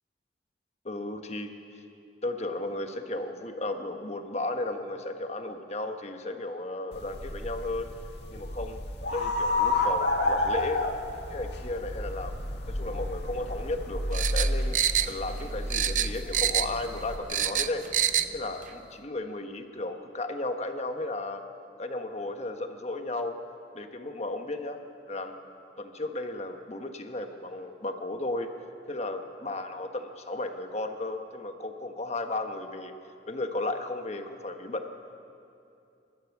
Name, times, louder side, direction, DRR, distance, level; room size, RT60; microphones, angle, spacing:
voice 1, 0.8-1.8 2.2-7.9 8.3-8.8 9.1-10.8 11.3-12.3 12.7-14.8 15.0-17.8 18.3-21.4 21.8-23.4 23.7-24.8 25.1-25.4 25.8-28.5 28.9-32.9 33.3-34.8, left 2 dB, 40° left, 5 dB, 1.3 m, -34 dB
sound 1, 6.9-17.2, left 2 dB, 75° left, 2.0 m, -31 dB
sound 2, 14.1-15.4 15.7-16.8 17.1-18.3 18.6-18.7, right 10 dB, 45° right, 0.6 m, -26 dB
27.0 x 13.0 x 7.3 m, 2.7 s
head